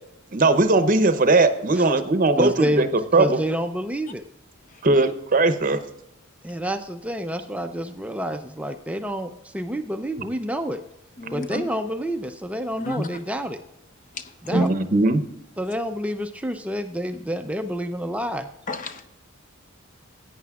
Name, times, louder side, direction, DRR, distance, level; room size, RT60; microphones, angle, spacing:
voice 1, 0.3-2.9 3.1-3.4 4.8-5.8 14.5-15.2, right 2 dB, 40° right, 0.7 m, -19 dB
voice 2, 2.4-2.8 3.2-4.2 6.4-10.8 11.3-13.6 14.4-14.7 15.6-18.5, equal, 5° right, 0.4 m, -28 dB
voice 3, 11.2-11.6 12.8-13.1 14.5-14.7 18.7-19.1, left 2 dB, 40° left, 0.6 m, -30 dB
16.5 x 9.3 x 2.4 m
head